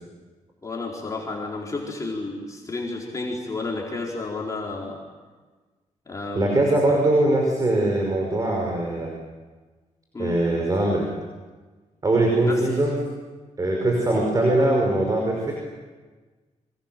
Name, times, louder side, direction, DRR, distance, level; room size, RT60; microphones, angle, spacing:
voice 1, 0.6-5.0 6.1-6.6 10.1-10.4 12.4-12.6, left 3 dB, 25° left, -3 dB, 4.5 m, -31 dB
voice 2, 6.4-9.1 10.2-11.1 12.0-13.0 13.6-15.5, right 1 dB, 30° right, 1 dB, 5.4 m, -21 dB
29.5 x 25.5 x 7.7 m, 1.3 s
wide cardioid pair, 130°, 13 cm